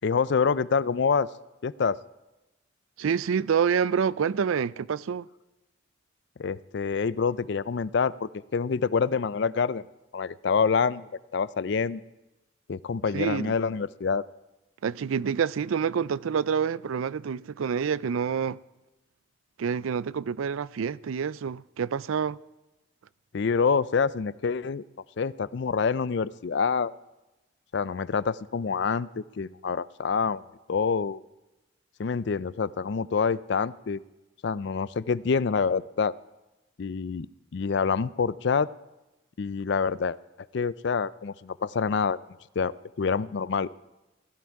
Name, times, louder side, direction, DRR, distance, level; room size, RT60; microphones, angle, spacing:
voice 1, 0.0-1.3 1.6-2.0 6.4-9.8 10.1-12.0 12.7-14.2 23.3-24.8 25.2-26.9 27.7-30.4 30.7-31.2 32.0-34.0 34.4-36.1 36.8-37.3 37.5-38.7 39.4-40.2 40.5-42.2 42.6-43.7, left 5 dB, 60° left, 0.4 m, -26 dB
voice 2, 3.0-5.3 13.1-13.5 14.8-18.6 19.6-22.4, right 7 dB, 85° right, 0.4 m, -27 dB
16.5 x 12.0 x 4.7 m
head